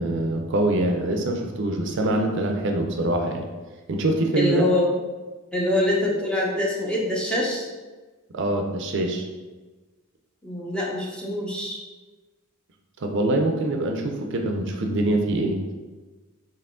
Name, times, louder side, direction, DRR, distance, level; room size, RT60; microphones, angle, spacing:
voice 1, 0.0-3.5 3.9-4.7 8.3-9.3 13.0-15.6, right 1 dB, 55° right, 3 dB, 0.5 m, -24 dB
voice 2, 4.4-4.9 5.5-7.7 10.4-11.8, left 1 dB, 5° left, -3 dB, 0.6 m, -24 dB
4.7 x 3.0 x 3.6 m, 1.3 s
head